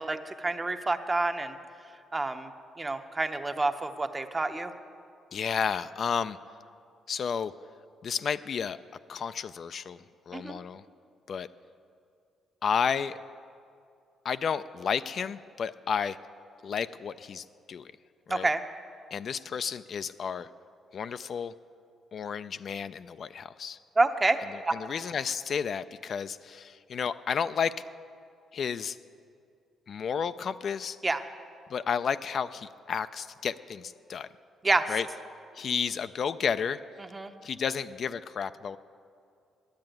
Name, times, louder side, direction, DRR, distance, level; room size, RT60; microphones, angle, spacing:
voice 1, 0.0-1.5 2.1-2.5 2.8-4.7 10.3-10.6 18.3-18.6 24.0-24.4 24.6-24.7 31.0-31.2 34.6-34.9 37.1-37.3, right 2 dB, 20° right, 8 dB, 0.7 m, -28 dB
voice 2, 5.3-6.4 7.1-7.5 8.0-8.8 9.1-10.0 10.3-10.8 11.3-11.5 12.6-13.2 14.2-16.2 16.6-17.9 18.3-18.5 19.1-20.5 20.9-21.5 22.1-23.8 24.7-27.8 28.5-29.0 29.9-31.0 31.7-34.3 34.9-35.1 35.5-36.8 37.4-38.8, left 7 dB, 55° left, 12 dB, 0.3 m, -32 dB
10.5 x 8.7 x 9.1 m, 2.5 s
cardioid pair, 90°, 0 cm